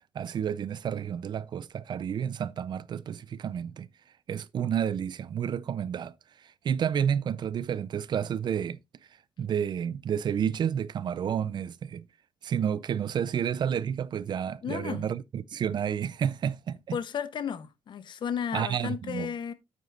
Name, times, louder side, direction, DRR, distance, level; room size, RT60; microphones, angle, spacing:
voice 1, 0.1-3.9 4.3-6.1 6.6-8.8 9.4-12.0 12.4-17.0 18.5-19.3, right 8 dB, 55° right, 0.5 m, -30 dB
voice 2, 14.6-15.0 16.9-19.5, left 8 dB, 60° left, 0.9 m, -33 dB
9.3 x 8.0 x 2.5 m
cardioid pair, 120°, 9 cm